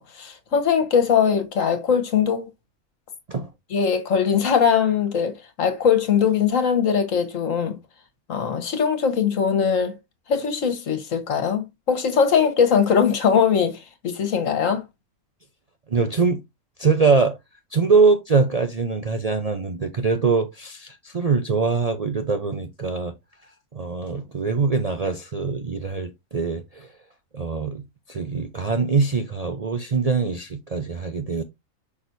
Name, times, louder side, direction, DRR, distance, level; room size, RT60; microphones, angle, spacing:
voice 1, 0.0-2.5 3.7-7.8 8.3-10.0 10.3-14.8, left 7 dB, 60° left, 1.6 m, -21 dB
voice 2, 15.9-16.4 16.8-17.4 17.7-23.1 23.7-26.9 27.3-31.4, right 4 dB, 55° right, 0.4 m, -23 dB
6.1 x 5.8 x 2.6 m
omnidirectional pair, 1.6 m